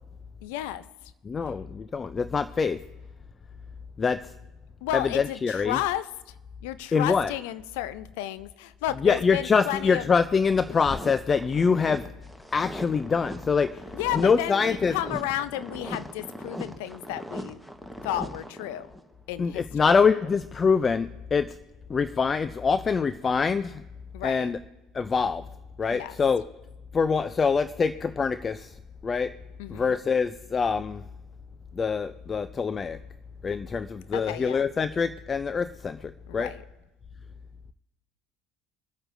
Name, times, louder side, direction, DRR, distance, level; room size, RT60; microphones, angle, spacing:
voice 1, 0.4-0.8 4.8-6.1 6.6-10.1 13.9-17.6 18.0-18.9 19.3-19.9 24.1-24.5 25.9-26.2 29.6-30.0 34.1-34.6 36.3-36.6, left 13 dB, 75° left, 14 dB, 0.6 m, -32 dB
voice 2, 1.3-2.8 4.0-4.2 4.9-5.8 6.9-7.3 9.0-12.0 12.5-13.8 14.1-15.0 19.4-21.5 21.9-23.8 24.2-24.6 24.9-25.4 25.8-26.4 26.9-28.7 29.0-29.3 29.7-31.0 31.8-33.0 33.4-36.5, left 5 dB, 30° left, 13 dB, 0.5 m, -24 dB
sound 1, 10.5-19.1, equal, 5° left, 1.3 m, -40 dB
25.5 x 8.7 x 2.7 m, 1.0 s
hypercardioid pair, 75°, 0 cm